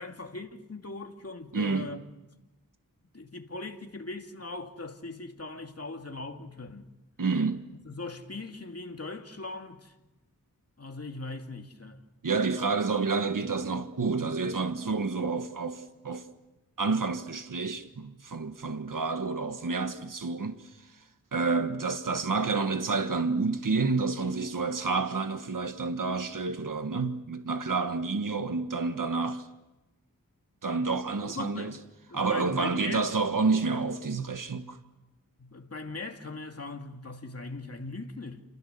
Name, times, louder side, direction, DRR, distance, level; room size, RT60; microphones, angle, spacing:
voice 1, 0.0-2.0 3.1-6.9 7.8-9.9 10.8-12.0 31.2-31.8 32.1-33.1 35.4-38.4, left 3 dB, 45° left, 2.5 m, -40 dB
voice 2, 1.5-1.9 7.2-7.6 12.2-16.2 16.8-20.7 21.3-29.5 30.6-31.8 32.1-34.8, right 4 dB, 65° right, 1.6 m, -29 dB
29.5 x 28.5 x 6.9 m
wide cardioid pair, 70°, 35 cm